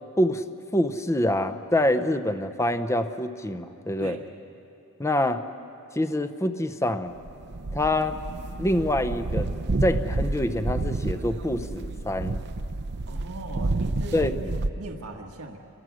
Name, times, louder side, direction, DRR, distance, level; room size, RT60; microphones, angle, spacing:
voice 1, 0.7-4.2 5.0-5.4 5.9-7.1 7.7-8.2 8.6-9.5 9.8-12.4 14.1-14.3, left 1 dB, 15° left, 10 dB, 0.7 m, -25 dB
sound 1, 7.2-14.7, right 2 dB, 50° right, 0.7 m, -30 dB
voice 2, 13.1-15.6, right 2 dB, 80° right, 1 dB, 1.6 m, -38 dB
29.0 x 23.0 x 6.4 m, 2.7 s
head